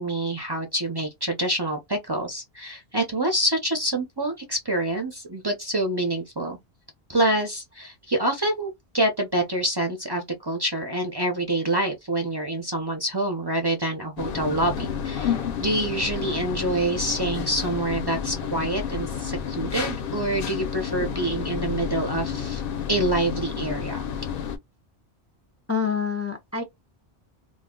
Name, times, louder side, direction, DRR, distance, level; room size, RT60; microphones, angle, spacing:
voice 1, 0.0-6.6 7.1-22.6 22.9-24.0, right 1 dB, 30° right, 0.5 m, -26 dB
sound 1, 14.2-24.6, left 7 dB, 65° left, 0.7 m, -30 dB
voice 2, 25.7-26.6, left 6 dB, 25° left, 0.3 m, -26 dB
2.3 x 2.1 x 3.6 m
omnidirectional pair, 1.0 m